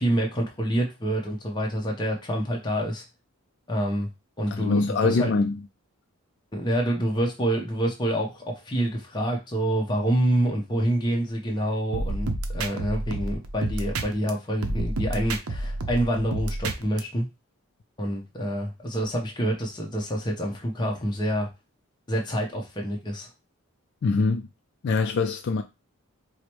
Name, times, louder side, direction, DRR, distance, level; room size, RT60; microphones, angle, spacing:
voice 1, 0.0-3.0 3.7-4.1 4.4-5.3 6.5-17.3 18.0-21.5 22.1-23.3, right 1 dB, 20° left, 0.7 m, -27 dB
voice 2, 4.5-5.6 24.0-24.4 24.8-25.6, left 4 dB, 50° left, 0.3 m, -23 dB
sound 1, 11.9-14.3 14.6-17.0, right 2 dB, 75° right, 0.6 m, -30 dB
4.8 x 2.1 x 2.9 m
head